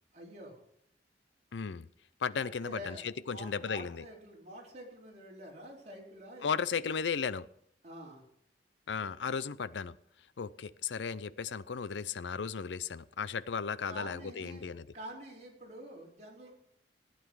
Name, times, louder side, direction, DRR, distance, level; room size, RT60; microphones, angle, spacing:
voice 1, 0.1-0.6 2.4-6.8 7.8-8.2 13.9-16.5, right 1 dB, 40° right, -2 dB, 4.1 m, -47 dB
voice 2, 1.5-1.9 2.2-4.0 6.4-7.5 8.9-9.9 10.4-14.9, left 6 dB, 90° left, 17 dB, 0.5 m, -35 dB
15.5 x 9.3 x 4.7 m, 0.74 s
head